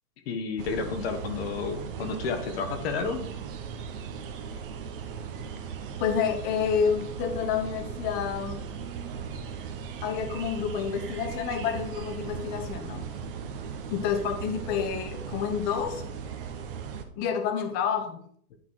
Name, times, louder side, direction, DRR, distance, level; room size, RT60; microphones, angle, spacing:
voice 1, 0.3-3.3, left 5 dB, 40° left, 7 dB, 1.1 m, -31 dB
sound 1, 0.6-17.0, right 6 dB, 35° right, 0.9 m, -38 dB
voice 2, 6.0-8.6 10.0-13.0 13.9-16.0 17.2-18.2, left 7 dB, 20° left, 6 dB, 0.8 m, -29 dB
10.0 x 4.0 x 4.7 m, 0.62 s
hypercardioid pair, 145°, 46 cm